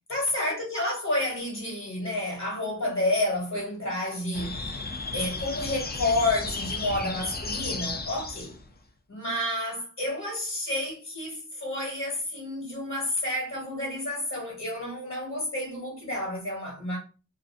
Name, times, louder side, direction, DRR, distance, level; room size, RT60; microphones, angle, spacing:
voice 1, 0.1-4.6 5.1-8.5 9.1-17.0, left 1 dB, 65° left, 1.2 m, -30 dB
sound 1, 4.3-8.7, left 3 dB, 30° left, 0.4 m, -34 dB
2.4 x 2.4 x 2.5 m
wide cardioid pair, 75°, 31 cm